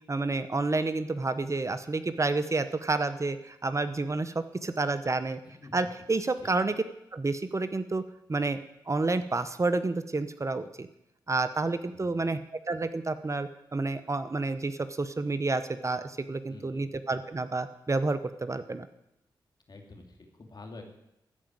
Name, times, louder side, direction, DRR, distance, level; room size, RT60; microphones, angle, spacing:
voice 1, 0.1-5.4 5.7-6.8 7.1-8.0 8.3-8.6 8.9-10.9 11.3-12.4 12.7-18.9, right 3 dB, 35° right, 12 dB, 0.8 m, -29 dB
voice 2, 11.9-12.3 16.5-16.9 19.7-20.8, left 3 dB, 50° left, 3 dB, 2.6 m, -48 dB
14.0 x 5.1 x 8.9 m, 0.83 s
supercardioid pair, 40°, 9 cm